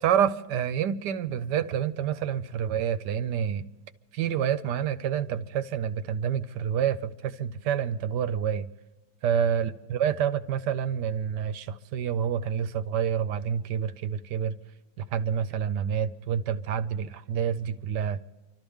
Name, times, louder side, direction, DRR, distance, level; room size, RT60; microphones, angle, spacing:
voice 1, 0.0-3.7 4.1-8.7 9.2-14.6 15.0-18.2, right 8 dB, 75° right, 1.3 m, -28 dB
29.5 x 13.0 x 3.6 m
omnidirectional pair, 1.9 m